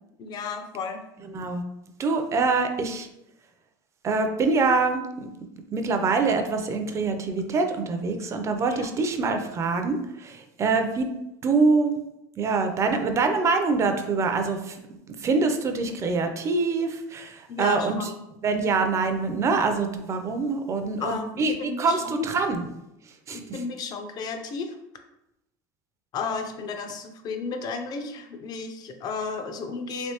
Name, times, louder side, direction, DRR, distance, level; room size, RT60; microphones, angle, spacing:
voice 1, 0.2-1.0 8.8-8.9 17.5-18.2 21.0-22.3 23.3-24.8 26.1-30.1, left 4 dB, 40° left, 6 dB, 0.5 m, -33 dB
voice 2, 2.0-3.1 4.0-5.3 5.7-11.1 11.4-11.9 12.4-14.8 15.2-18.1 18.4-22.7 23.3-23.6, right 4 dB, 30° right, 6 dB, 0.5 m, -25 dB
3.2 x 3.0 x 2.9 m, 0.87 s
supercardioid pair, 120°, 10 cm